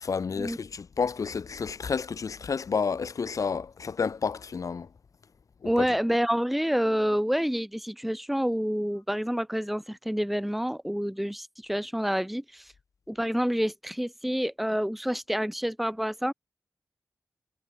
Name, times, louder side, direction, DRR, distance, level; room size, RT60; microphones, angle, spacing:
voice 1, 0.0-4.9 5.6-5.8, left 5 dB, 65° left, 2.7 m, -30 dB
voice 2, 5.7-12.7 13.1-16.3, equal, ahead, 2.0 m, -28 dB
wide cardioid pair, 150°, 6 cm